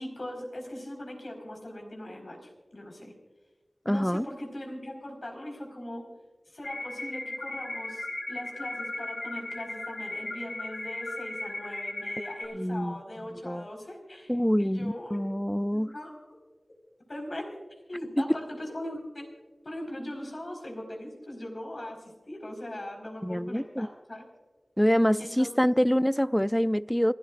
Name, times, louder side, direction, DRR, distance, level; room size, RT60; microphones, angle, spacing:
voice 1, 0.0-3.1 3.8-6.0 6.5-14.3 14.6-15.2 15.7-16.4 17.1-17.4 17.9-19.3 19.6-24.3 25.2-25.6, left 1 dB, 60° left, 4.6 m, -40 dB
voice 2, 3.9-4.3 12.5-13.0 13.3-13.7 14.3-15.9 18.2-18.3 23.2-23.9 24.8-27.1, equal, 10° left, 0.4 m, -26 dB
sound 1, 6.6-12.4, left 2 dB, 85° left, 3.3 m, -37 dB
28.5 x 13.0 x 2.5 m
wide cardioid pair, 40°, 0 cm